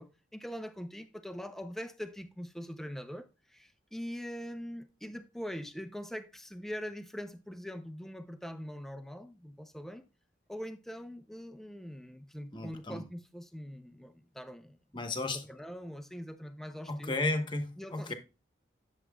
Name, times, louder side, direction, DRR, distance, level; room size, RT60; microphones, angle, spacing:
voice 1, 0.0-10.0 10.5-14.8 15.3-17.2 17.8-18.1, equal, ahead, 0.5 m, -43 dB
voice 2, 12.5-13.1 14.9-15.5 16.9-18.1, left 2 dB, 25° left, 1.0 m, -34 dB
10.0 x 7.3 x 2.3 m
head